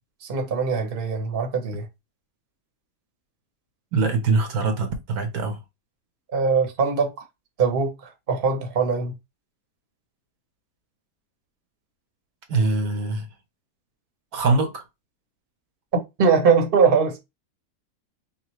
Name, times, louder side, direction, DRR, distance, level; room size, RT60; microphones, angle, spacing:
voice 1, 0.2-1.9 6.3-7.3 7.6-9.1 16.2-17.2, right 5 dB, 40° right, 1.1 m, -21 dB
voice 2, 3.9-5.6 12.5-13.3 14.3-14.8, right 3 dB, 80° right, 1.5 m, -23 dB
5.6 x 2.4 x 3.1 m
omnidirectional pair, 1.6 m